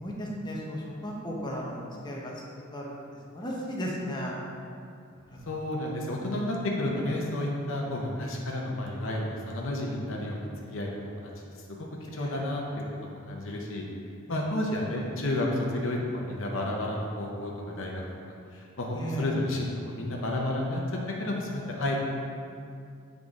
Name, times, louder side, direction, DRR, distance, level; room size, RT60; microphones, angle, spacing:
voice 1, 0.0-2.3 2.7-2.9 3.3-4.3 5.3-5.5 12.2-12.4 14.3-14.4 18.9-19.3, equal, 20° left, -3 dB, 0.9 m, -35 dB
voice 2, 5.5-11.3 12.1-12.6 13.0-13.8 14.3-18.0 18.5-20.8 21.2-22.0, left 1 dB, 65° left, -2 dB, 0.8 m, -31 dB
8.2 x 3.9 x 3.6 m, 2.4 s
head